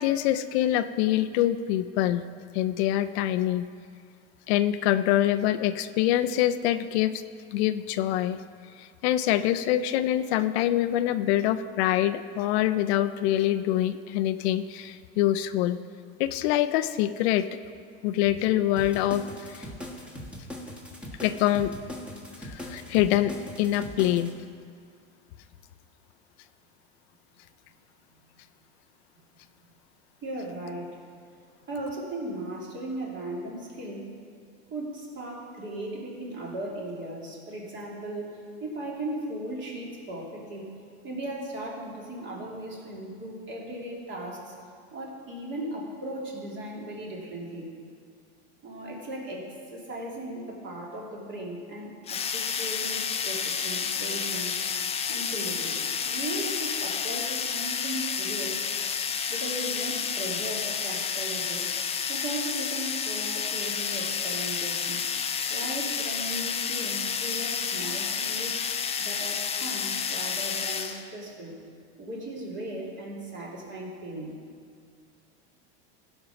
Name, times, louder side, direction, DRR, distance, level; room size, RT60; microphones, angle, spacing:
voice 1, 0.0-2.2 2.5-3.7 4.5-7.2 7.5-8.4 8.8-15.8 16.2-17.5 18.0-19.6 21.2-21.7 22.4-24.3, left 13 dB, 65° left, 11 dB, 0.5 m, -25 dB
sound 1, 18.8-24.3, left 1 dB, 5° right, 1.5 m, -40 dB
voice 2, 30.2-31.1 31.7-34.1 34.7-40.7 41.0-44.5 44.9-47.7 48.6-58.6 59.3-61.7 62.1-65.0 65.5-68.6 69.0-71.6 72.0-74.4, right 1 dB, 35° right, -3 dB, 2.7 m, -37 dB
sound 2, 52.1-71.0, left 6 dB, 20° left, 0.5 m, -30 dB
15.5 x 5.5 x 5.8 m, 2.1 s
supercardioid pair, 125°, 34 cm